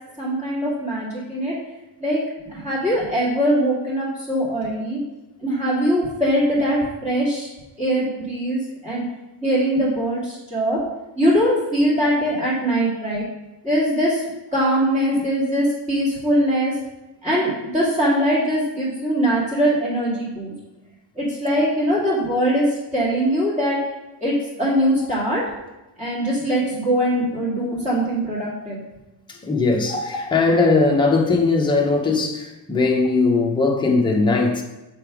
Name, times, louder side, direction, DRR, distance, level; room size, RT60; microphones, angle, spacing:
voice 1, 0.2-1.5 2.0-2.2 2.5-5.0 5.4-7.5 7.8-9.0 9.4-10.8 11.2-13.2 13.6-14.2 14.5-16.7 17.2-20.5 21.2-22.6 22.9-23.8 24.2-25.4 26.0-28.8, equal, 15° right, 2.2 m, -21 dB
voice 2, 29.3-34.6, left 3 dB, 10° left, 0.6 m, -19 dB
6.7 x 3.3 x 4.7 m
cardioid pair, 165°, 44 cm